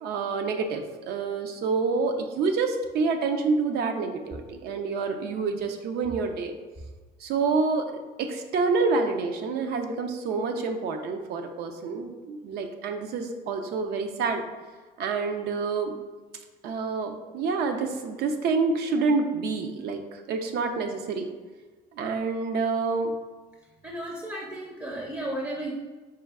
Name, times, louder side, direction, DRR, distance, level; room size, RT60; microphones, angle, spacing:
voice 1, 0.0-6.5 7.2-7.9 8.2-14.4 15.0-15.9 16.6-21.3 22.0-23.1, right 4 dB, 75° right, 5 dB, 0.5 m, -27 dB
voice 2, 23.8-25.7, right 1 dB, 15° right, -1 dB, 0.5 m, -34 dB
4.4 x 2.2 x 3.5 m, 1.3 s
cardioid pair, 110°, 17 cm